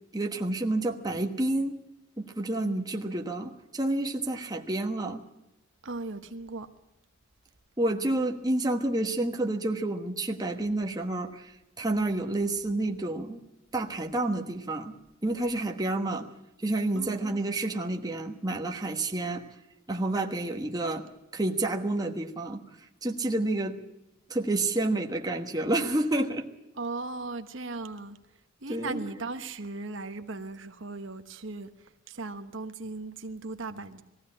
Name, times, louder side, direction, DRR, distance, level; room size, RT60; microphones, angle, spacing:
voice 1, 0.1-1.8 2.2-5.2 7.8-13.4 13.7-15.0 15.2-16.3 16.6-19.4 19.9-21.1 21.3-22.6 23.0-23.8 24.3-26.5 28.7-29.0, right 2 dB, 20° right, 1.3 m, -29 dB
voice 2, 5.8-6.7 16.9-17.2 26.8-28.2 28.6-34.0, right 3 dB, 60° right, 1.1 m, -37 dB
20.5 x 15.5 x 8.6 m
head